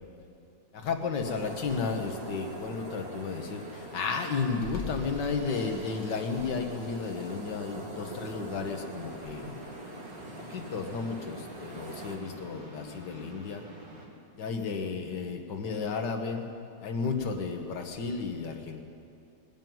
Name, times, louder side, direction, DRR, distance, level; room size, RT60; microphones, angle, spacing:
voice 1, 0.7-9.6 10.4-13.6 14.4-16.5 16.8-18.8, left 4 dB, 75° left, 4 dB, 1.9 m, -33 dB
sound 1, 1.2-12.2, right 1 dB, 35° right, 2.1 m, -43 dB
sound 2, 8.6-14.1, right 1 dB, 75° right, 3.2 m, -48 dB
20.5 x 7.5 x 9.2 m, 2.5 s
omnidirectional pair, 1.9 m